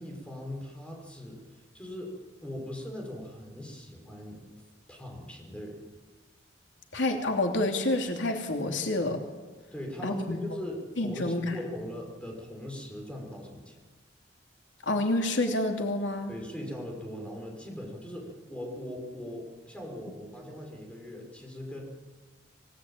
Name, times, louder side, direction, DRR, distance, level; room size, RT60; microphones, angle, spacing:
voice 1, 0.0-1.4 1.7-2.1 2.4-4.4 4.9-5.8 9.7-13.8 16.3-21.8, left 1 dB, 5° left, 0 dB, 6.0 m, -40 dB
voice 2, 6.9-9.2 10.0-10.4 11.0-11.6 14.9-16.3, left 2 dB, 80° left, 3 dB, 2.9 m, -28 dB
26.5 x 18.0 x 9.0 m, 1.3 s
head